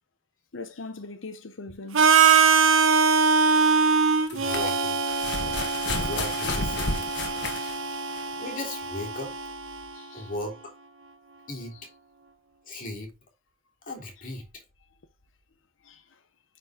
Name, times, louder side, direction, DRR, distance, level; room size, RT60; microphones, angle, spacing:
voice 1, 0.5-2.1 5.8-5.9 6.7-7.8 9.9-10.3 11.7-11.8 15.8-16.2, left 3 dB, 75° left, 0.8 m, -43 dB
Harmonica, 1.9-9.8, right 5 dB, 85° right, 1.1 m, -23 dB
sound 1, 2.0-2.1 4.1-8.3 9.3-9.4, left 3 dB, 60° left, 1.6 m, -32 dB
voice 2, 4.3-5.0 5.9-7.2 8.4-9.3 10.1-10.6 11.5-11.8 12.7-13.1 13.9-14.5, left 2 dB, 45° left, 3.3 m, -36 dB
9.3 x 4.5 x 3.7 m
head